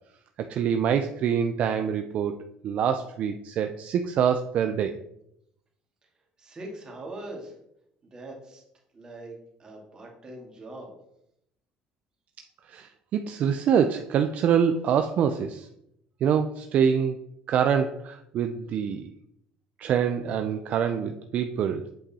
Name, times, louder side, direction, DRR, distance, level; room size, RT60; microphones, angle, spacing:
voice 1, 0.4-2.3 2.6-5.0 12.7-15.7 16.2-17.2 17.5-19.1 19.8-21.9, right 8 dB, 50° right, 7 dB, 0.5 m, -25 dB
voice 2, 6.4-7.6 8.0-8.6 8.9-10.9, right 1 dB, 25° right, 0 dB, 2.2 m, -42 dB
7.8 x 5.3 x 4.2 m, 0.78 s
cardioid pair, 140°, 3 cm